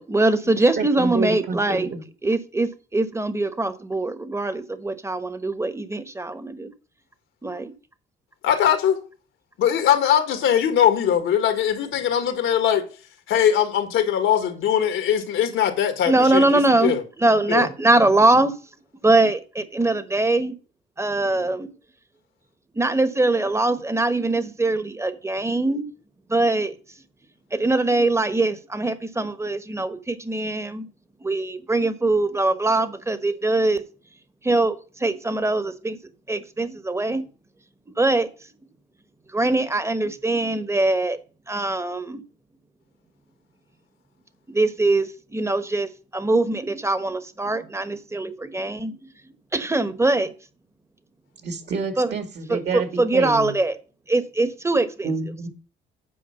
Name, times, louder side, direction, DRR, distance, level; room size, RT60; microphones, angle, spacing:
voice 1, 0.0-1.9 2.2-6.7 7.4-7.7 16.1-18.5 19.0-20.6 21.0-21.7 22.7-25.9 26.3-26.8 27.5-30.9 31.2-33.8 34.4-36.0 36.3-37.3 38.0-38.3 39.3-41.2 41.5-42.2 44.5-49.1 49.5-50.3 52.0-52.1 52.5-53.8 54.1-55.1, right 2 dB, 15° right, 1.1 m, -22 dB
voice 2, 0.8-2.0 51.4-53.6 55.0-55.5, right 4 dB, 60° right, 2.4 m, -28 dB
voice 3, 8.4-9.0 9.6-12.8 13.3-17.0 17.5-17.7, left 9 dB, 80° left, 1.6 m, -21 dB
8.7 x 4.7 x 6.9 m
cardioid pair, 90°, 20 cm